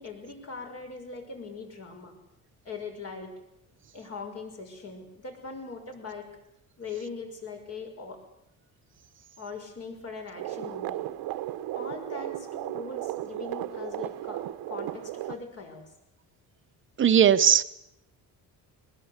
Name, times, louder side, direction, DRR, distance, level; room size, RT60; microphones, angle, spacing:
voice 1, 0.0-2.2 2.6-3.3 3.9-6.3 6.8-8.2 9.4-11.0 11.7-15.9, left 4 dB, 45° left, 4 dB, 5.9 m, -41 dB
sound 1, 10.3-15.4, right 14 dB, 85° right, 1.1 m, -35 dB
voice 2, 17.0-17.6, right 9 dB, 35° right, 11 dB, 1.0 m, -18 dB
21.5 x 20.5 x 8.2 m, 0.81 s
cardioid pair, 155°, 35 cm